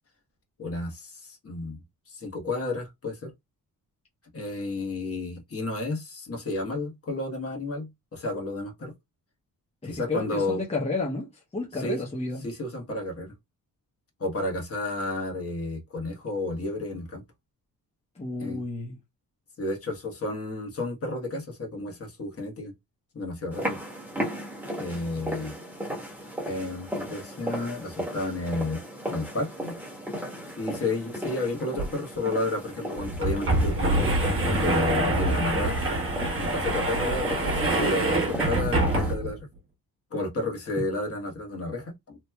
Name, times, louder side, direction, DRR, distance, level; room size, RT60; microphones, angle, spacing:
voice 1, 0.6-1.8 2.1-3.3 4.3-8.9 9.8-10.6 11.7-12.0 12.4-13.3 14.2-17.2 18.4-18.6 19.6-22.7 23.1-23.8 24.7-25.6 26.4-28.8 29.1-29.7 30.6-35.8 36.4-39.4 40.1-42.2, left 2 dB, 40° left, 1.2 m, -31 dB
voice 2, 9.8-11.3 11.5-12.4 18.2-19.0, left 3 dB, 15° left, 0.9 m, -32 dB
sound 1, 23.5-39.2, equal, 5° right, 1.2 m, -36 dB
sound 2, 31.8-31.9 32.2-32.3 33.0-39.4, right 2 dB, 35° right, 1.2 m, -25 dB
3.0 x 2.7 x 2.2 m
cardioid pair, 130°, 36 cm